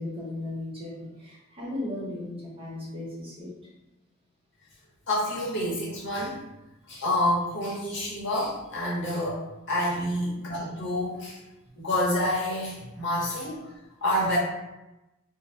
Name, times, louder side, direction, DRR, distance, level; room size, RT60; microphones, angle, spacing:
voice 1, 0.0-3.5 12.9-13.0, left 2 dB, 25° right, -7 dB, 0.8 m, -36 dB
voice 2, 5.1-6.4 6.9-9.4 9.7-11.4 11.7-13.7 14.0-14.4, left 1 dB, 60° left, -6 dB, 0.8 m, -28 dB
2.1 x 2.0 x 2.9 m, 0.99 s
head